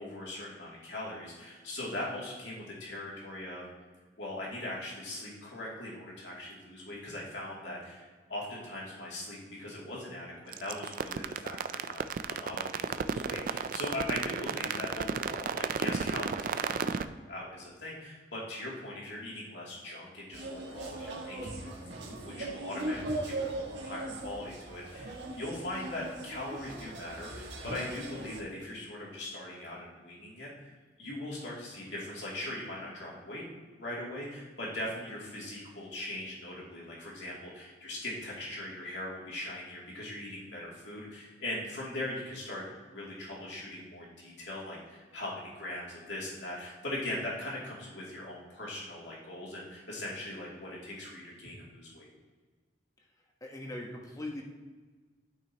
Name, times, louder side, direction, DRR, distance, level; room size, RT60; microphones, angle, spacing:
voice 1, 0.0-3.7 4.2-12.0 12.3-33.4 33.7-52.1, left 1 dB, 70° left, -5 dB, 2.6 m, -40 dB
sound 1, 10.5-17.0, right 6 dB, 50° right, 0.4 m, -32 dB
sound 2, 20.3-28.4, right 2 dB, 80° right, 1.8 m, -39 dB
voice 2, 53.4-54.4, left 1 dB, 20° left, 0 dB, 1.2 m, -40 dB
12.5 x 5.6 x 2.9 m, 1.4 s
head